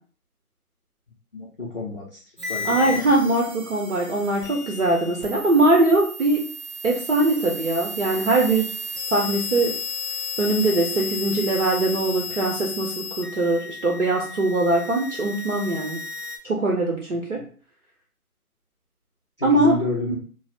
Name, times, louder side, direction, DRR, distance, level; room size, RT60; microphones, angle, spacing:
voice 1, 1.3-2.2 2.5-3.1 19.4-20.2, left 2 dB, 40° left, -5 dB, 0.6 m, -30 dB
sound 1, 2.4-16.4, left 3 dB, 20° right, 0.6 m, -34 dB
voice 2, 2.6-6.4 6.8-8.7 9.1-9.7 10.4-16.0 16.4-17.4 19.4-19.8, right 2 dB, 55° right, -1 dB, 0.8 m, -21 dB
5.5 x 2.0 x 2.4 m, 0.43 s
figure-of-eight pair, 150°, 45 cm